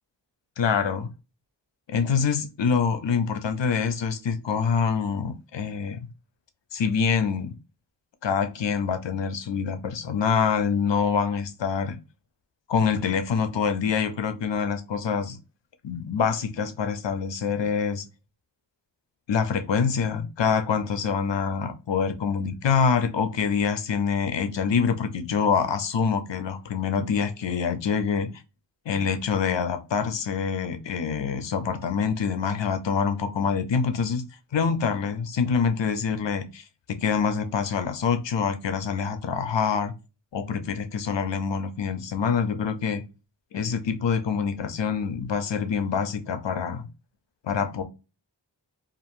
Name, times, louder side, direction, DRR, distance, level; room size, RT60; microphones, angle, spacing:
voice 1, 0.6-1.1 1.9-6.0 6.7-7.5 8.2-12.0 12.7-15.4 15.8-18.1 19.3-28.3 28.9-34.2 34.5-39.9 40.3-43.0 43.5-46.9 47.4-47.8, left 6 dB, 80° left, 0.6 m, -25 dB
2.9 x 2.5 x 2.5 m
wide cardioid pair, 55°, 43 cm